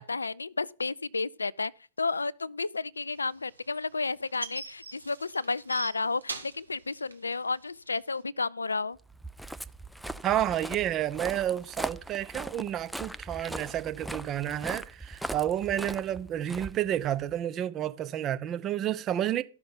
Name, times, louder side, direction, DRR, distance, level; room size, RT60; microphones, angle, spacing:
voice 1, 0.0-1.7 2.0-9.0, left 3 dB, 85° left, 0.4 m, -32 dB
sound 1, 3.2-8.2, right 3 dB, 90° right, 1.7 m, -42 dB
Walk footsteps, 9.1-17.3, right 1 dB, ahead, 0.6 m, -40 dB
voice 2, 10.2-19.4, right 11 dB, 30° right, 0.9 m, -30 dB
14.0 x 6.2 x 5.2 m
figure-of-eight pair, 105°, 0 cm